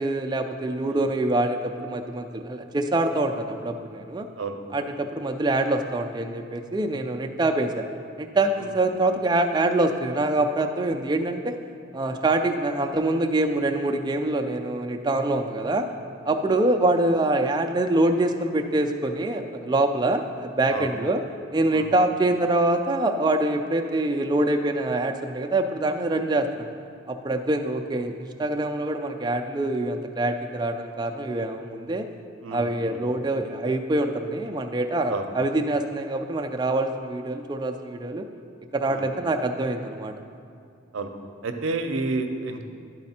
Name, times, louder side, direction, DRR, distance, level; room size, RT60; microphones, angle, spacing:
voice 1, 0.0-4.3 4.7-7.9 8.2-11.6 11.9-15.9 16.2-21.2 21.5-26.7 27.1-32.1 32.5-38.3 38.7-40.1, right 2 dB, 20° right, 4 dB, 0.3 m, -25 dB
voice 2, 32.4-33.0 35.1-35.2 38.9-39.1 40.9-41.1 41.4-42.7, right 3 dB, 80° right, 6 dB, 0.6 m, -30 dB
11.5 x 4.2 x 4.2 m, 2.5 s
head